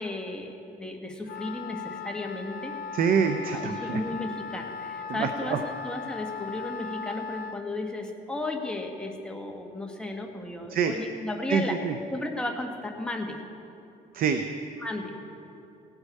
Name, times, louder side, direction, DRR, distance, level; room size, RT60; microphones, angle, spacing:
voice 1, 0.0-2.8 3.5-11.8 12.1-13.4 14.8-15.2, left 2 dB, 5° left, 1 dB, 1.4 m, -34 dB
Wind instrument woodwind instrument, 1.2-7.6, left 6 dB, 60° left, 0.7 m, -38 dB
voice 2, 2.9-4.0 5.1-5.6 10.7-10.9 11.5-11.9 14.1-14.4, right 6 dB, 60° right, 7 dB, 0.7 m, -26 dB
17.5 x 8.2 x 5.4 m, 2.7 s
cardioid pair, 110°, 17 cm